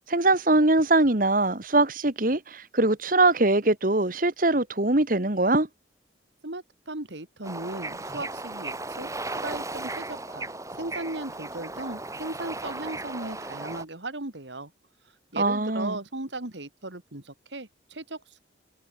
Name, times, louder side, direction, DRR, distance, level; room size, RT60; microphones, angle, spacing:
voice 1, 0.1-5.7 15.4-16.0, right 2 dB, 45° right, 1.8 m, -22 dB
voice 2, 6.4-14.7 15.3-18.4, right 2 dB, 80° right, 3.1 m, -37 dB
Bird / Ocean, 7.4-13.9, right 2 dB, 15° right, 4.4 m, -36 dB
head